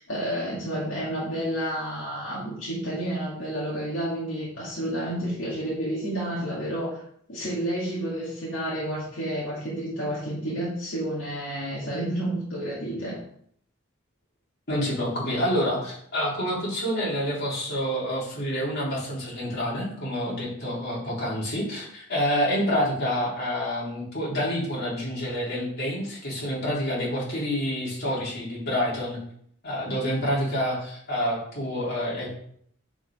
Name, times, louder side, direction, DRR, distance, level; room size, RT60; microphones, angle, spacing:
voice 1, 0.0-7.0 7.3-13.2, right 1 dB, 70° left, -8 dB, 2.5 m, -30 dB
voice 2, 14.7-29.2 29.6-32.3, equal, 55° left, -6 dB, 3.4 m, -28 dB
9.6 x 5.1 x 3.6 m, 0.66 s
head